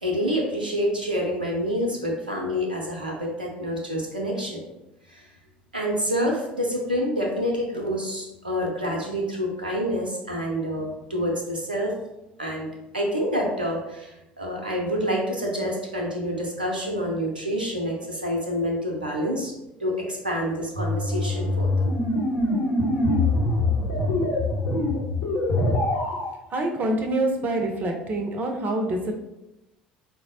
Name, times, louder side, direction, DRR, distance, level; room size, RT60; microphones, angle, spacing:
voice 1, 0.0-4.6 5.1-5.3 5.7-12.0 12.4-12.7 12.9-19.5 19.8-21.9, equal, 85° right, -1 dB, 0.5 m, -27 dB
sound 1, 20.7-26.3, left 2 dB, 55° left, 0.8 m, -24 dB
voice 2, 26.5-29.1, right 1 dB, 35° right, 3 dB, 0.5 m, -26 dB
4.3 x 2.0 x 2.7 m, 0.92 s
figure-of-eight pair, 65°, 5 cm